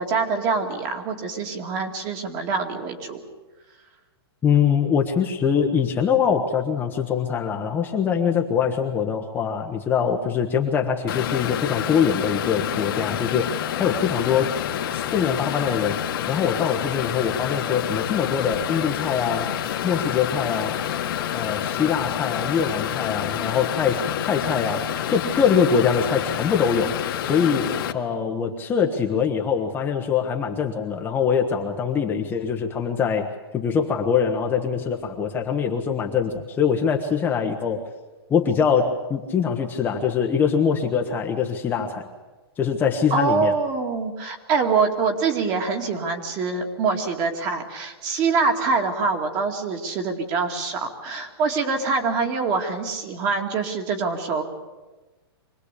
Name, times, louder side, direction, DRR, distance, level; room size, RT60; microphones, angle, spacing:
voice 1, 0.0-3.2 43.1-54.4, right 4 dB, 30° right, 4 dB, 2.5 m, -25 dB
voice 2, 4.4-13.5 13.8-14.5 14.9-16.0 16.3-19.5 19.8-20.8 21.3-26.9 27.2-33.3 33.5-37.8 38.3-42.1 42.6-43.5, left 7 dB, 15° left, 2 dB, 1.2 m, -23 dB
sound 1, 11.1-27.9, left 10 dB, 55° left, 1.8 m, -28 dB
25.0 x 19.0 x 8.4 m, 1.2 s
hypercardioid pair, 160°, 13 cm